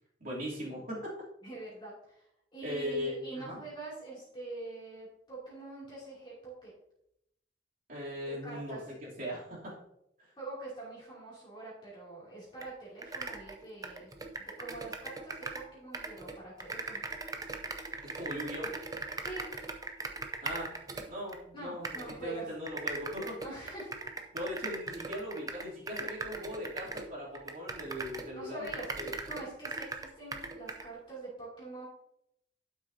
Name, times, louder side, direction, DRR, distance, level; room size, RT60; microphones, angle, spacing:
voice 1, 0.2-1.1 2.6-3.6 7.9-9.8 10.2-10.3 18.0-18.7 20.4-20.8 21.1-23.4 24.3-29.1, equal, 45° right, -5 dB, 3.0 m, -39 dB
voice 2, 1.4-6.7 8.4-8.8 10.4-14.1 14.4-17.0 19.2-19.4 21.5-22.4 23.4-24.1 28.3-28.9 29.2-31.9, right 2 dB, 25° left, -7 dB, 2.7 m, -45 dB
sound 1, 12.6-12.7 13.0-15.7 15.9-21.4 21.8-22.2 22.7-28.3 28.6-30.9, right 3 dB, 20° right, 0.6 m, -39 dB
11.5 x 6.2 x 2.8 m, 0.80 s
head